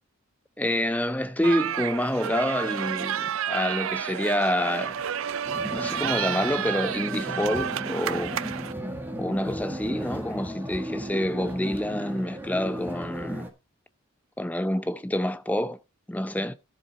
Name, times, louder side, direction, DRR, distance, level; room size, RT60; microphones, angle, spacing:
voice 1, 0.6-5.0 5.6-8.3 9.2-13.5 14.4-15.8 16.1-16.5, left 1 dB, 5° left, 0.6 m, -27 dB
sound 1, 1.4-8.7, right 9 dB, 75° right, 0.5 m, -30 dB
sound 2, 5.4-13.5, equal, 10° right, 1.8 m, -35 dB
13.5 x 7.5 x 4.3 m
head